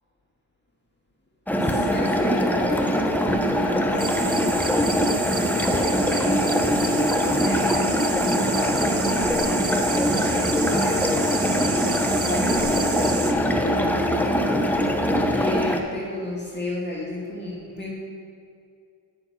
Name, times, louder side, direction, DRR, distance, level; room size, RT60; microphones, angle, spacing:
sound 1, 1.5-15.8, equal, 5° left, 0.7 m, -22 dB
voice 1, 1.6-4.4 5.3-12.0 12.2-14.9 15.3-17.9, left 1 dB, 25° left, -5 dB, 2.0 m, -33 dB
sound 2, 3.8-15.4, right 3 dB, 60° right, 1.6 m, -40 dB
sound 3, 4.0-13.3, right 5 dB, 35° right, 0.6 m, -31 dB
10.0 x 3.8 x 5.7 m, 2.3 s
cardioid pair, 65°, 41 cm